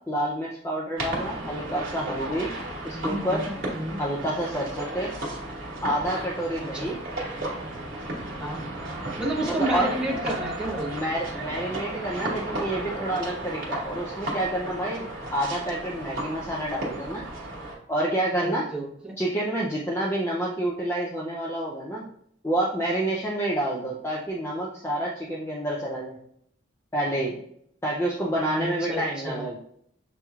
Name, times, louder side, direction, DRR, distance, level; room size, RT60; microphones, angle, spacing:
voice 1, 0.1-2.5 2.8-3.4 4.0-5.1 5.8-7.0 9.4-9.9 10.9-17.2 17.9-18.7 19.2-22.1 22.4-26.2 26.9-27.4 27.8-29.6, right 1 dB, 15° left, -3 dB, 0.4 m, -28 dB
sound 1, 1.0-17.7, right 1 dB, 55° right, 1.3 m, -34 dB
voice 2, 2.9-4.0 6.6-6.9 8.4-8.6 9.2-10.9 18.4-19.1 28.5-29.4, right 1 dB, 5° right, -5 dB, 1.1 m, -31 dB
6.6 x 3.0 x 2.3 m, 0.70 s
head